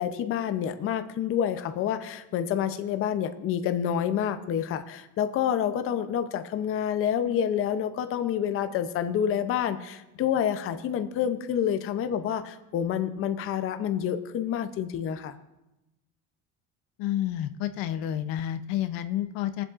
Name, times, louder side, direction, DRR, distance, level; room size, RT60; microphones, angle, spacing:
voice 1, 0.0-15.3, left 9 dB, 40° left, 9 dB, 0.6 m, -28 dB
voice 2, 17.0-19.6, left 12 dB, 85° left, 11 dB, 0.7 m, -30 dB
23.0 x 7.7 x 2.5 m, 0.95 s
cardioid pair, 150°, 34 cm